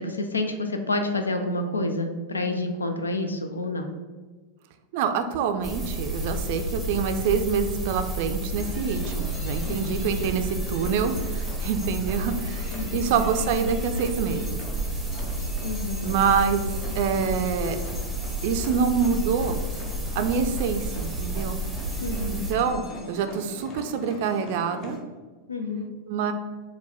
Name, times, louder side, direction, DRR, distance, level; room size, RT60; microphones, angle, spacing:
voice 1, 0.0-3.9 9.7-9.8 12.7-13.1 15.6-16.0 22.0-22.4 25.5-25.9, left 2 dB, 75° left, 6 dB, 0.4 m, -29 dB
voice 2, 4.9-14.6 16.0-17.8 18.4-19.6 20.1-21.6 22.3-25.0 26.1-26.3, right 6 dB, 50° right, 8 dB, 0.4 m, -26 dB
sound 1, 5.6-22.5, right 1 dB, 5° right, 0.7 m, -31 dB
sound 2, 8.6-25.0, left 2 dB, 35° left, 0.6 m, -42 dB
4.5 x 2.2 x 4.1 m, 1.3 s
figure-of-eight pair, 90°, 0 cm